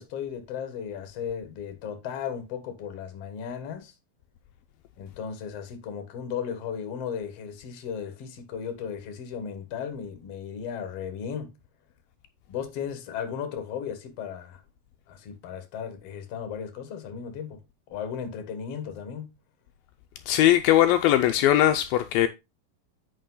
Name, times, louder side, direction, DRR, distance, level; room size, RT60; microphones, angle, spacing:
voice 1, 0.0-3.9 5.0-11.5 12.5-14.6 15.1-17.6 17.9-19.3, left 7 dB, 50° left, 2.1 m, -35 dB
voice 2, 20.3-22.3, left 12 dB, 80° left, 2.3 m, -20 dB
8.8 x 5.6 x 3.8 m
omnidirectional pair, 4.4 m